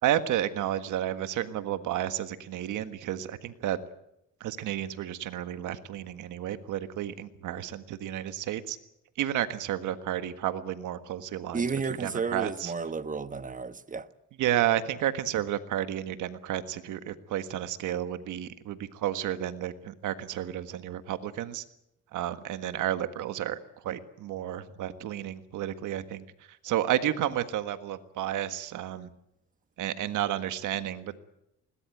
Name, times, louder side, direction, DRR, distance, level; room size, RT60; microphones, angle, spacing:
voice 1, 0.0-3.8 4.4-8.8 9.2-11.6 12.0-12.7 14.4-21.6 22.1-23.6 23.8-29.1 29.8-31.2, right 11 dB, 85° right, 1.6 m, -31 dB
voice 2, 11.5-14.1, right 5 dB, 25° right, 1.2 m, -32 dB
21.0 x 19.0 x 9.2 m
cardioid pair, 90°, 30 cm